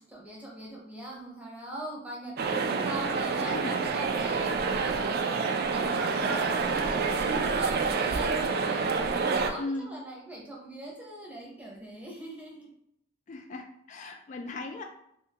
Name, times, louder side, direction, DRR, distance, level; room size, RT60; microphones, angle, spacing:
voice 1, 0.0-12.7, right 1 dB, 5° right, -3 dB, 0.7 m, -42 dB
sound 1, 2.4-9.5, right 4 dB, 50° right, 0.3 m, -28 dB
voice 2, 3.4-3.8 4.2-4.4 9.6-9.9 13.3-14.8, left 2 dB, 40° left, 3 dB, 0.3 m, -38 dB
3.4 x 2.6 x 2.8 m, 0.76 s
head